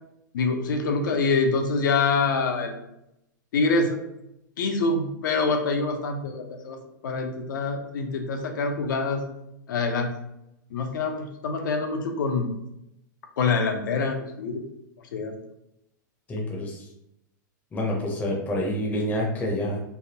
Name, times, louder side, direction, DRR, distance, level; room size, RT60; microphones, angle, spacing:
voice 1, 0.3-2.8 3.5-4.0 4.6-6.8 7.0-9.2 9.7-10.1 10.7-12.5 13.4-14.6 15.1-15.3, left 4 dB, 80° left, 4 dB, 0.6 m, -25 dB
voice 2, 16.3-16.8 17.7-19.8, left 1 dB, 15° left, -1 dB, 0.5 m, -27 dB
3.3 x 2.1 x 2.7 m, 0.82 s
hypercardioid pair, 140°, 10 cm